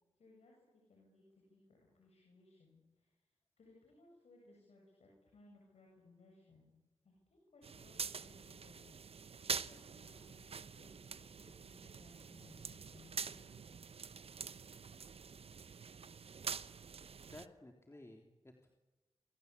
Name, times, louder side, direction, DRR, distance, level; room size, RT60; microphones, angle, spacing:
voice 1, 0.2-3.2 3.6-6.7 7.0-8.9 9.7-13.6, left 2 dB, 85° left, -1 dB, 7.6 m, -64 dB
sound 1, 7.6-17.5, right 6 dB, 70° right, 0.9 m, -46 dB
voice 2, 17.3-18.7, left 1 dB, 25° left, 3 dB, 3.4 m, -56 dB
27.5 x 25.0 x 8.4 m, 1.1 s
cardioid pair, 50°, 11 cm